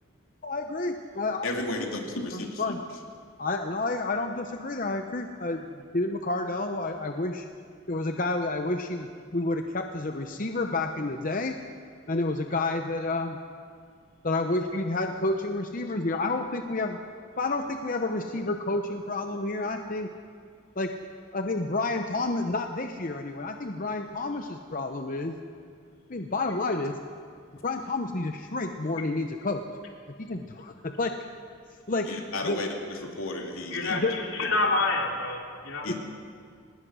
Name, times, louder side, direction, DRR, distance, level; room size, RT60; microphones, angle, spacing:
voice 1, 0.4-1.5 2.3-2.8 3.4-7.5 7.9-11.5 12.1-13.4 14.2-17.0 17.4-20.1 20.8-20.9 21.3-25.4 26.1-27.0 27.6-29.6 30.2-31.1 31.9-32.1 32.5-32.6 33.9-34.2 35.9-36.0, left 2 dB, 40° left, 5 dB, 0.8 m, -30 dB
voice 2, 1.4-2.6 32.0-34.0 35.8-35.9, left 2 dB, 85° left, 1 dB, 3.0 m, -33 dB
voice 3, 33.7-35.9, left 2 dB, 65° left, 0 dB, 3.2 m, -28 dB
25.0 x 19.5 x 6.3 m, 2.2 s
head